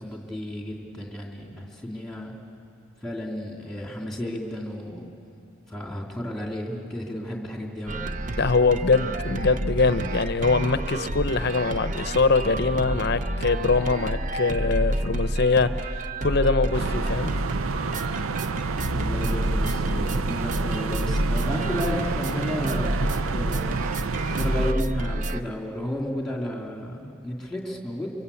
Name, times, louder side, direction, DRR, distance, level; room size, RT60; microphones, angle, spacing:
voice 1, 0.0-2.3 3.0-5.1 5.7-8.0 18.9-23.7 24.3-28.1, left 1 dB, ahead, 0 dB, 2.9 m, -32 dB
sound 1, 7.9-25.4, right 1 dB, 35° right, 0.7 m, -29 dB
voice 2, 8.4-17.3, left 3 dB, 50° left, 12 dB, 0.7 m, -23 dB
sound 2, 16.7-24.7, right 5 dB, 80° right, 0.6 m, -30 dB
29.0 x 24.0 x 8.5 m, 2.6 s
head